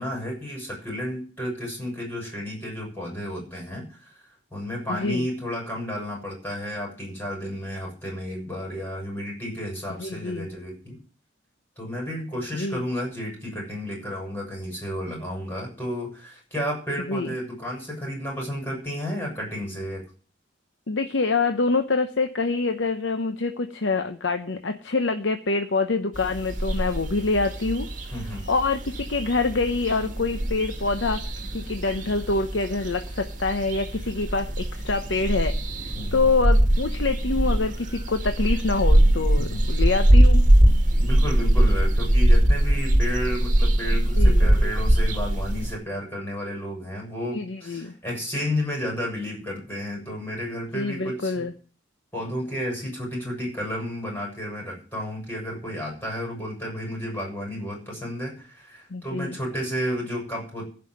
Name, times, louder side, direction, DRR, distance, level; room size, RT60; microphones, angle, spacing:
voice 1, 0.0-11.0 11.8-20.0 28.1-28.5 35.9-36.2 39.5-39.7 41.0-51.5 52.1-60.7, equal, 10° left, -2 dB, 6.8 m, -32 dB
voice 2, 4.9-5.3 10.0-10.5 12.5-12.8 17.1-17.3 20.9-27.9 28.5-31.2 31.5-40.4 44.2-44.5 47.3-47.9 50.7-51.5 58.9-59.4, left 3 dB, 75° left, 7 dB, 0.9 m, -26 dB
sound 1, 26.2-45.8, right 1 dB, 45° right, 2.2 m, -21 dB
15.0 x 5.7 x 7.8 m, 0.40 s
head